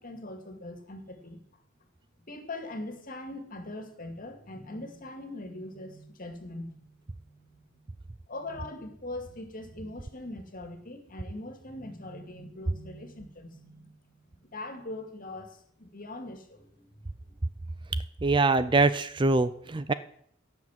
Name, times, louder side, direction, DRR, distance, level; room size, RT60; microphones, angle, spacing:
voice 1, 0.0-1.4 2.3-6.8 7.2-7.8 8.3-14.1 14.4-17.4, left 2 dB, 45° left, 6 dB, 2.4 m, -42 dB
voice 2, 18.2-19.9, right 3 dB, 25° right, 13 dB, 0.5 m, -23 dB
17.0 x 7.3 x 7.6 m, 0.66 s
head